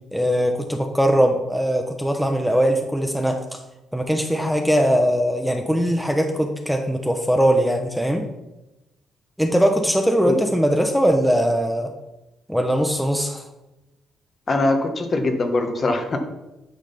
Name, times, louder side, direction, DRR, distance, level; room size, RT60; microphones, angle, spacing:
voice 1, 0.1-3.6 3.9-8.3 9.4-11.9 12.5-13.4, equal, ahead, 3 dB, 0.9 m, -20 dB
voice 2, 14.5-16.2, left 2 dB, 40° left, 5 dB, 1.4 m, -22 dB
9.3 x 5.0 x 5.7 m, 0.98 s
cardioid pair, 90°, 0 cm